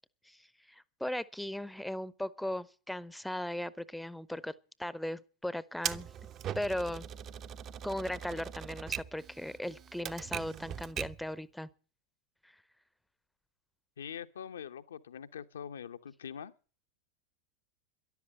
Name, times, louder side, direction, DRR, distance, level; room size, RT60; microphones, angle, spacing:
voice 1, 0.7-4.5 4.8-6.1 6.5-7.1 7.8-11.7, left 1 dB, ahead, 0.7 m, -37 dB
Typewriter, 5.8-11.3, right 9 dB, 30° right, 0.7 m, -40 dB
voice 2, 14.0-16.5, left 8 dB, 65° left, 0.8 m, -43 dB
13.0 x 11.5 x 7.6 m
figure-of-eight pair, 90°, 0 cm